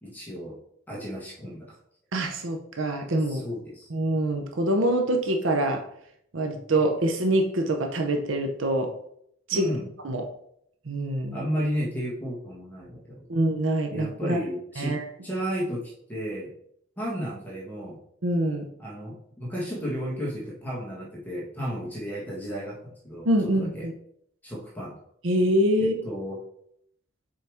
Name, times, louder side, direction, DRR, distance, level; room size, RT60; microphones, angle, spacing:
voice 1, 0.0-0.6 0.9-1.7 3.2-3.9 9.5-9.9 11.3-13.3 13.9-16.5 17.0-18.0 18.8-23.9 24.4-25.0 25.8-26.4, equal, 10° left, -5 dB, 1.4 m, -33 dB
voice 2, 2.1-3.4 3.9-5.8 6.3-8.9 9.5-9.7 10.0-10.3 10.9-11.4 13.3-14.4 14.8-15.0 18.2-18.7 23.3-23.9 25.2-25.9, right 1 dB, 80° right, 4 dB, 0.8 m, -25 dB
6.9 x 4.7 x 3.5 m, 0.70 s
head